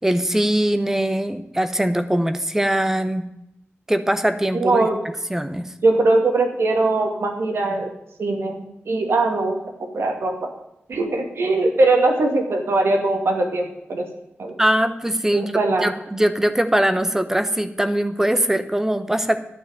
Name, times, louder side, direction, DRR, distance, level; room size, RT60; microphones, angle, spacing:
voice 1, 0.0-3.3 3.9-4.9 5.3-5.7 14.6-15.5 15.8-19.4, right 1 dB, 10° right, 9 dB, 0.8 m, -21 dB
voice 2, 4.6-5.0 5.8-7.9 8.2-9.6 9.9-10.5 10.9-14.1 14.4-14.5 15.3-15.9, right 2 dB, 70° right, 3 dB, 2.3 m, -21 dB
11.5 x 5.9 x 8.9 m, 0.85 s
wide cardioid pair, 145°, 4 cm